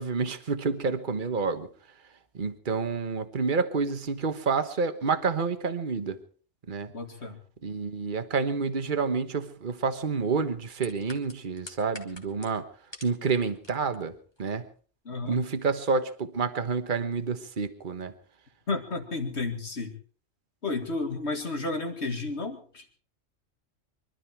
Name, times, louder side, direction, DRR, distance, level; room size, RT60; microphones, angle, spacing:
voice 1, 0.0-1.7 2.3-6.2 6.7-6.9 7.6-12.6 13.0-14.1 14.4-14.6 15.2-18.1, right 5 dB, 40° right, 9 dB, 1.4 m, -28 dB
voice 2, 6.9-7.4 15.1-15.4 18.7-20.0 20.6-22.8, left 3 dB, 55° left, 5 dB, 2.5 m, -32 dB
sound 1, 10.8-13.2 13.5-14.0 14.4-14.5, left 1 dB, 20° left, 2.3 m, -45 dB
24.5 x 12.5 x 4.6 m, 0.41 s
omnidirectional pair, 1.3 m